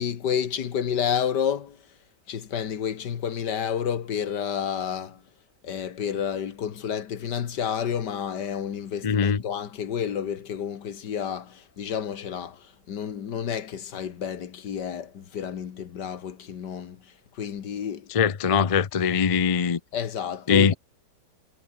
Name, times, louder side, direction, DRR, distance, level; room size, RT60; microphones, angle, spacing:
voice 1, 0.0-1.8 2.3-5.2 5.6-18.1 19.9-20.8, left 8 dB, 80° left, 2.0 m, -30 dB
voice 2, 9.0-9.4 18.1-19.8 20.5-20.7, left 6 dB, 40° left, 0.4 m, -21 dB
omnidirectional pair, 1.8 m